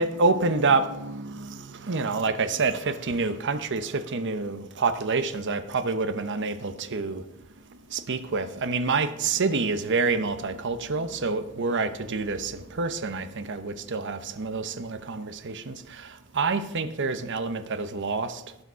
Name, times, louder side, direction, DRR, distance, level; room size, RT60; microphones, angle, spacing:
voice 1, 0.0-7.3 7.5-18.6, right 4 dB, 55° right, 0.9 m, -27 dB
12.5 x 9.9 x 5.6 m
head